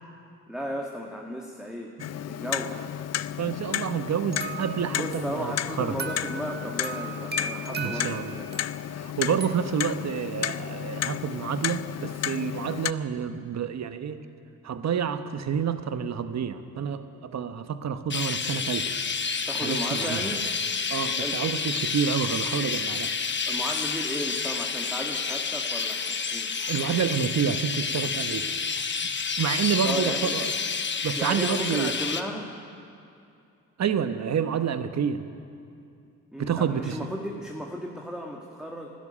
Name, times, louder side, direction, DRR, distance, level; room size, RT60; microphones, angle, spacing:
voice 1, 0.5-1.9 2.3-2.8 4.9-9.0 19.5-20.5 21.2-21.6 23.5-26.5 29.8-30.4 31.2-32.5 36.3-38.9, equal, ahead, 0 dB, 1.8 m, -35 dB
Clock, 2.0-12.9, left 11 dB, 50° left, 0.5 m, -32 dB
voice 2, 3.4-6.0 7.8-8.4 9.0-14.2 14.6-18.9 19.6-20.2 20.9-23.1 26.7-28.6 29.0-29.1 29.4-30.5 31.0-31.9 33.8-35.3 36.4-37.0, right 7 dB, 55° right, 10 dB, 1.1 m, -28 dB
sound 1, 4.3-9.6, right 4 dB, 30° right, 1.4 m, -38 dB
Chirp tweet, 18.1-32.2, left 5 dB, 35° left, 1.0 m, -29 dB
12.5 x 11.0 x 9.9 m, 2.5 s
supercardioid pair, 55°, 33 cm